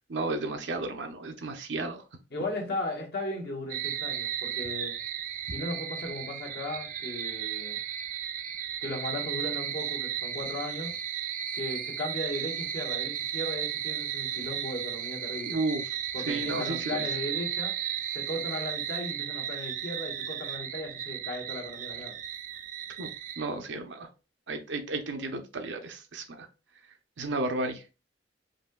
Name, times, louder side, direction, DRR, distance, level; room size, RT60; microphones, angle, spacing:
voice 1, 0.1-2.0 15.5-15.8 16.3-17.0 23.0-23.1 23.4-24.1 24.5-26.5 27.2-27.8, right 2 dB, 75° right, 0.7 m, -33 dB
voice 2, 2.3-5.0 5.5-7.8 8.8-10.9 11.5-15.6 16.1-17.7 18.1-22.2, left 1 dB, 60° left, 1.3 m, -36 dB
sound 1, 3.7-23.5, right 10 dB, 45° right, 0.4 m, -34 dB
5.3 x 2.7 x 2.3 m
head